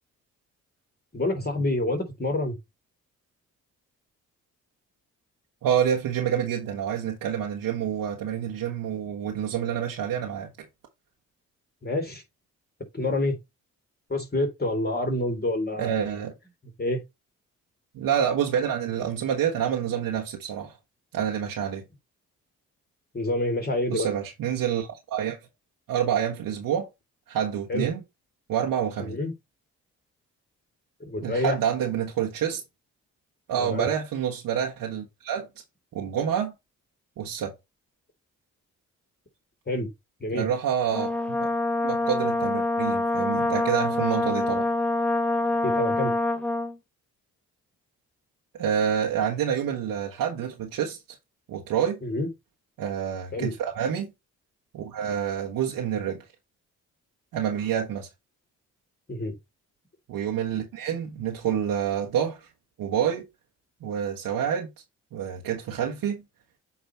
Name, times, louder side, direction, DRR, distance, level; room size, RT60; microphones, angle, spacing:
voice 1, 1.1-2.6 11.8-12.2 12.9-13.4 14.1-16.0 16.8-17.0 23.1-24.1 27.7-27.9 29.0-29.3 31.0-31.6 33.6-33.9 39.7-39.9 40.2-40.5 45.6-46.1 52.0-52.3 53.3-53.5 59.1-59.4, left 1 dB, 30° left, 2.9 m, -27 dB
voice 2, 5.6-10.5 15.8-16.3 17.9-20.7 21.1-21.8 23.9-25.4 25.9-26.9 27.3-28.0 28.5-29.2 31.2-32.6 33.5-35.5 35.9-36.5 37.2-37.5 40.3-41.5 41.8-44.7 48.5-51.0 51.5-52.0 52.8-54.1 54.7-56.2 57.3-58.1 60.1-62.5 62.8-63.2 63.8-64.7 65.1-66.2, right 9 dB, 80° right, 1.3 m, -27 dB
Brass instrument, 40.9-46.8, left 2 dB, 5° left, 0.8 m, -25 dB
8.3 x 3.0 x 4.4 m
supercardioid pair, 50°, 34 cm